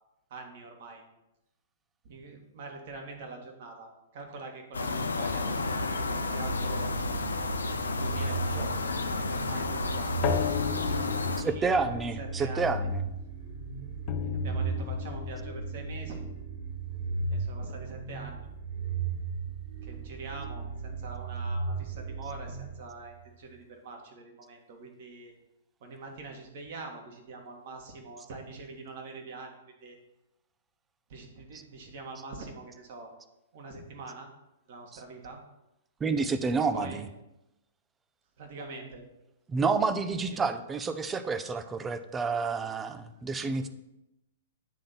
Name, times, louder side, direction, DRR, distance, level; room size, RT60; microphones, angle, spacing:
voice 1, 0.3-1.0 2.0-6.9 7.8-10.3 10.8-12.7 14.2-16.2 17.3-18.5 19.8-25.3 25.8-30.0 31.1-33.1 33.5-34.3 34.7-35.4 36.5-37.0 38.4-39.1 40.3-40.4 43.2-43.7, right 3 dB, 55° right, 2 dB, 1.8 m, -44 dB
sound 1, 4.7-11.4, left 3 dB, 80° left, 0.7 m, -31 dB
sound 2, 6.4-23.3, right 4 dB, 70° right, 3.1 m, -36 dB
sound 3, 9.1-13.5 14.1-17.4, left 10 dB, 40° left, 0.6 m, -36 dB
voice 2, 11.4-13.0 32.2-32.3 34.9-35.0 36.0-37.1 39.5-43.7, right 4 dB, 15° right, 10 dB, 0.6 m, -29 dB
9.2 x 3.8 x 5.9 m, 0.91 s
figure-of-eight pair, 110°, 0 cm